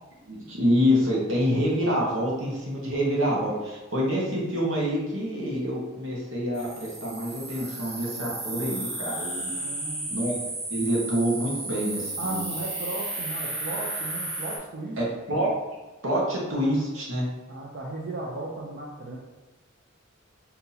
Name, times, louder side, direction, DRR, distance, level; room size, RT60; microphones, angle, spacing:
voice 1, 0.2-9.5 10.1-10.3 10.7-12.5 15.0-15.5 16.0-17.3, equal, 80° right, -4 dB, 1.1 m, -26 dB
sound 1, 6.5-14.6, right 2 dB, 30° right, 0.8 m, -34 dB
voice 2, 9.5-10.1 12.2-15.0 17.5-19.2, right 2 dB, 55° right, -3 dB, 0.5 m, -36 dB
2.8 x 2.7 x 3.9 m, 1.1 s
head